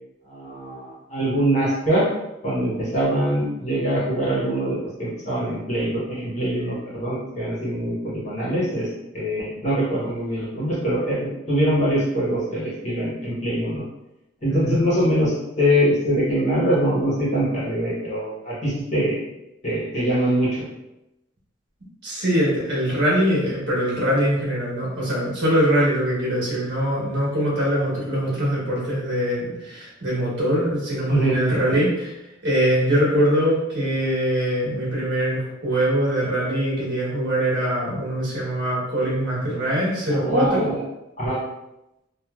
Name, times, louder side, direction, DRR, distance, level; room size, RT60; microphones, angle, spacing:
voice 1, 0.3-2.1 2.4-8.9 9.1-13.8 14.4-19.2 19.6-20.7 31.1-31.4 40.1-40.8 41.2-41.4, equal, 35° left, -7 dB, 1.1 m, -23 dB
voice 2, 22.0-32.1 32.4-40.6, equal, 65° right, -6 dB, 1.2 m, -22 dB
3.0 x 2.5 x 2.4 m, 0.92 s
head